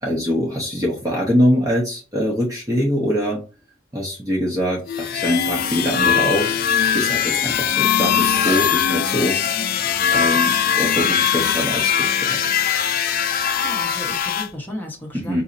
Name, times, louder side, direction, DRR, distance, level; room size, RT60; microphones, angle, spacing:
voice 1, 0.0-3.4 3.9-6.5 6.9-9.4 10.1-12.4 15.1-15.4, equal, 15° right, -1 dB, 0.7 m, -23 dB
sound 1, 4.9-14.5, left 8 dB, 45° left, 0.3 m, -20 dB
voice 2, 13.6-15.4, left 1 dB, 10° left, -1 dB, 0.9 m, -35 dB
4.0 x 2.7 x 2.5 m, 0.32 s
head